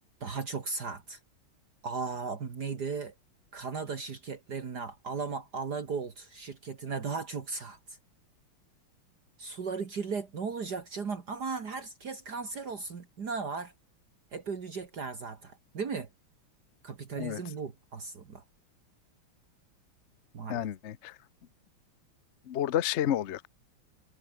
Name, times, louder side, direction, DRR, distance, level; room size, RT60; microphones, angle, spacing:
voice 1, 0.2-1.2 1.8-3.1 3.5-7.8 9.4-13.7 14.3-16.1 16.8-18.4 20.3-20.7, right 5 dB, 50° right, 2.4 m, -36 dB
voice 2, 20.5-21.2 22.5-23.5, left 11 dB, 60° left, 0.7 m, -30 dB
omnidirectional pair, 2.3 m